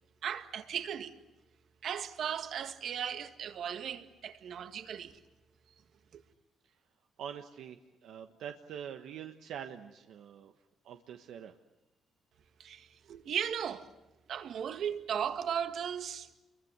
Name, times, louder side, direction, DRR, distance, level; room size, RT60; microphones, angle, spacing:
voice 1, 0.2-1.1 1.8-5.2 6.1-6.2 12.6-13.9 14.3-16.3, right 8 dB, 65° right, 1.9 m, -36 dB
voice 2, 7.2-10.5 10.8-11.5, right 9 dB, 80° right, 1.3 m, -45 dB
29.0 x 23.0 x 8.2 m
cardioid pair, 115°, 0 cm